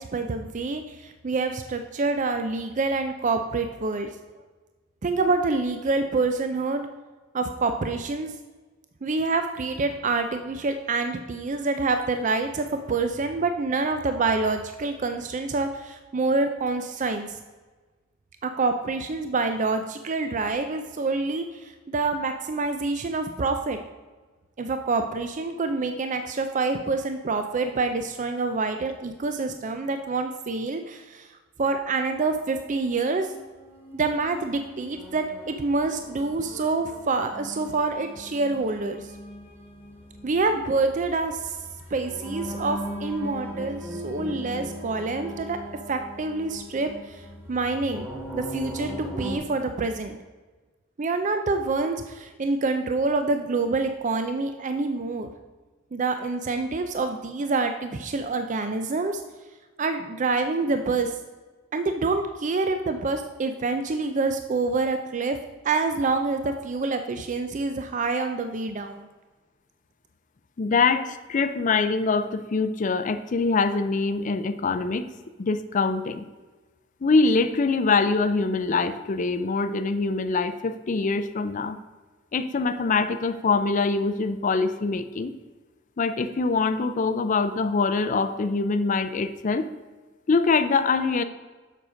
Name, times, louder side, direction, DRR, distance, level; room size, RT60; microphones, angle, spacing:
voice 1, 0.0-4.2 5.0-6.9 7.3-8.3 9.0-17.4 18.4-23.8 24.6-31.3 31.6-33.3 33.9-39.1 40.2-41.6 41.9-45.6 45.9-48.1 48.3-50.2 51.0-55.3 55.9-59.2 59.8-61.1 61.7-65.4 65.6-69.1, right 3 dB, 40° right, 7 dB, 0.5 m, -27 dB
sound 1, 32.8-49.4, equal, 10° right, 1.8 m, -39 dB
voice 2, 70.6-75.1 75.4-76.3 77.0-81.8 82.3-85.3 86.0-89.7 90.3-91.2, left 4 dB, 40° left, 10 dB, 0.4 m, -24 dB
7.5 x 6.4 x 5.0 m, 1.3 s
head